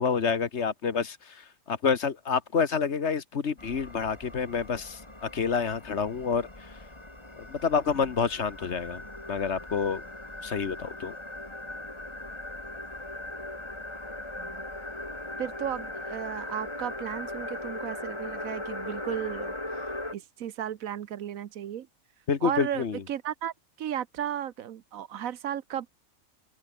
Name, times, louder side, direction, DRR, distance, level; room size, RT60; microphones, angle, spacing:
voice 1, 0.0-6.5 7.4-9.0 9.3-10.0 10.4-11.1 22.3-23.0, left 6 dB, 50° left, 1.5 m, -28 dB
sound 1, 3.6-20.1, left 1 dB, 20° left, 2.7 m, -39 dB
voice 2, 15.4-19.5 20.1-21.9 22.4-25.9, right 10 dB, 75° right, 1.2 m, -34 dB
open air
omnidirectional pair, 1.5 m